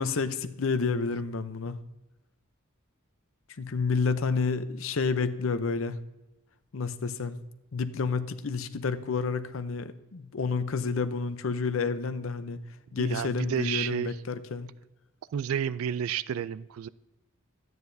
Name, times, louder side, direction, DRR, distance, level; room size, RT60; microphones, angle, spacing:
voice 1, 0.0-1.8 3.6-6.0 6.7-7.4 7.7-12.6 12.9-14.7, left 4 dB, 70° left, 11 dB, 0.6 m, -29 dB
voice 2, 13.0-14.2 15.3-16.9, right 8 dB, 80° right, 18 dB, 0.3 m, -31 dB
12.5 x 9.3 x 2.7 m, 0.96 s
head